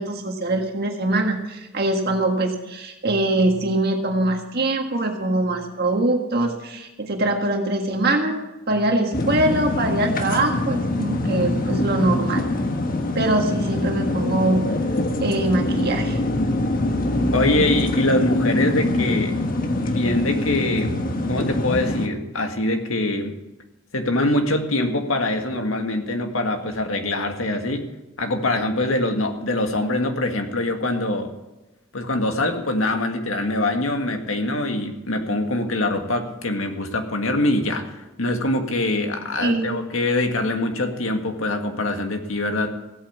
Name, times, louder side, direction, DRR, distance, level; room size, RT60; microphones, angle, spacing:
voice 1, 0.0-8.4 8.7-12.4 13.2-14.8 15.2-16.2 39.4-39.8, right 2 dB, 50° right, 2 dB, 1.7 m, -23 dB
sound 1, 9.1-22.1, left 1 dB, 45° left, 1.4 m, -24 dB
voice 2, 17.3-19.4 19.8-20.9 21.3-23.3 23.9-27.8 28.2-31.3 31.9-42.7, left 2 dB, 85° left, 4 dB, 1.8 m, -24 dB
15.5 x 8.8 x 7.2 m, 1.0 s
head